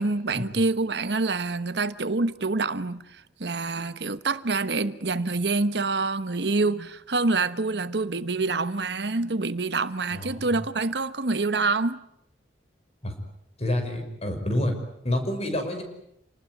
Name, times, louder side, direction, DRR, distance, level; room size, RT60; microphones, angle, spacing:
voice 1, 0.0-12.0, right 3 dB, 70° right, 1.2 m, -26 dB
voice 2, 10.1-10.5 13.0-13.1 13.6-14.8 15.0-15.8, left 1 dB, 35° left, 5.8 m, -28 dB
29.0 x 20.0 x 9.6 m
head